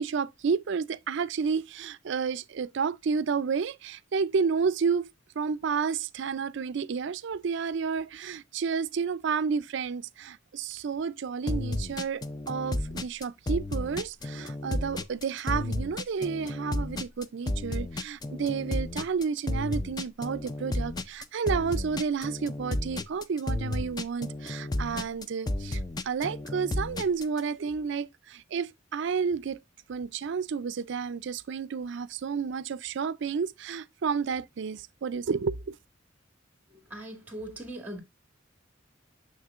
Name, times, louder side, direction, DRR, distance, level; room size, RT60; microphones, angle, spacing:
voice 1, 0.0-5.1 5.4-29.6 29.9-35.8, right 6 dB, 60° right, 0.4 m, -31 dB
sound 1, 11.5-27.4, left 1 dB, 20° left, 0.4 m, -32 dB
voice 2, 36.7-38.0, right 1 dB, 10° right, 1.8 m, -40 dB
6.7 x 6.5 x 2.4 m
head